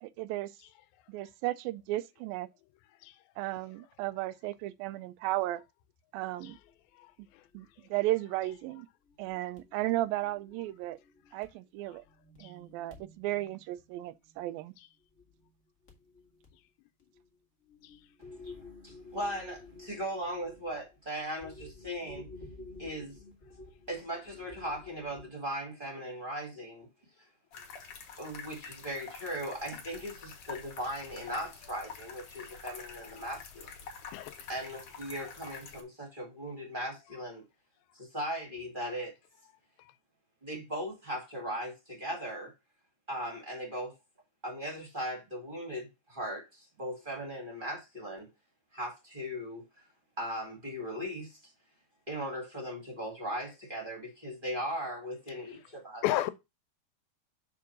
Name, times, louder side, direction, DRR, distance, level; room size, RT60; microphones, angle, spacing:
voice 1, 0.0-0.5 1.1-2.5 3.4-5.6 6.1-6.6 7.5-8.9 9.2-11.0 11.3-12.1 12.4-14.7, right 16 dB, 80° right, 2.3 m, -34 dB
sound 1, 6.5-6.7 7.2-7.6 7.9-8.0 8.5-8.6 9.1-11.5 11.9-14.7 15.0-15.5 15.8-16.6 17.0-17.4 17.7-25.3, left 3 dB, 40° left, 1.0 m, -52 dB
voice 2, 7.0-7.4 12.4-12.5 17.8-18.0 34.1-34.5 39.8-39.9 56.0-56.3, left 15 dB, 85° left, 2.4 m, -34 dB
voice 3, 18.8-22.3 22.8-23.2 23.9-26.9 28.2-33.7 34.5-37.4 37.9-39.1 40.4-42.5 43.1-43.9 44.4-48.3 48.7-49.9 50.2-51.5 52.1-56.0, equal, 20° right, 1.6 m, -38 dB
sound 2, 27.5-35.8, left 6 dB, 55° left, 1.6 m, -47 dB
6.9 x 3.7 x 5.9 m
omnidirectional pair, 4.2 m